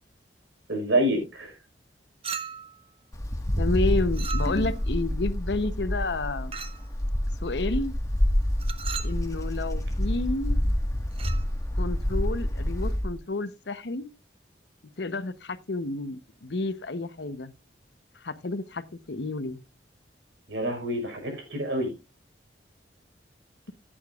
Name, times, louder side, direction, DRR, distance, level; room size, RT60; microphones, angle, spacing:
voice 1, 0.7-1.6 20.5-21.9, right 1 dB, 90° right, 5.2 m, -27 dB
Chink clink, 2.2-2.8 4.1-4.8 6.5-6.9 8.6-9.2 11.1-11.5, right 6 dB, 30° right, 0.9 m, -37 dB
Wind, 3.1-13.1, left 1 dB, 20° left, 1.6 m, -27 dB
voice 2, 3.6-6.6 7.4-7.9 9.0-10.6 11.8-14.1 15.0-17.5 18.1-19.6, left 2 dB, 65° left, 0.9 m, -30 dB
15.5 x 8.8 x 2.4 m
head